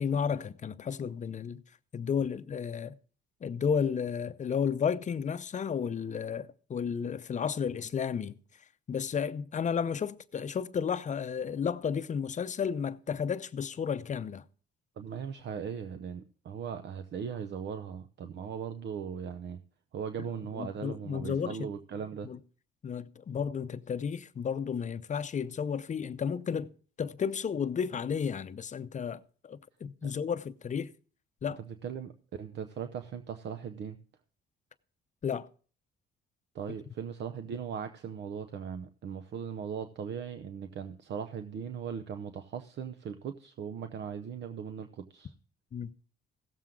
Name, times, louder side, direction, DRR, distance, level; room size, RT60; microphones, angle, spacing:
voice 1, 0.0-1.6 1.9-2.9 3.4-8.4 8.9-14.4 20.5-21.6 22.2-22.4 22.8-26.7 27.0-30.9 31.4-31.6 35.2-35.5 45.7-45.9, left 7 dB, 40° left, 0.6 m, -32 dB
voice 2, 15.0-19.6 19.9-22.3 30.0-30.1 31.7-34.0 36.5-45.3, right 7 dB, 60° right, 0.7 m, -39 dB
16.5 x 7.4 x 3.7 m
cardioid pair, 90°, 20 cm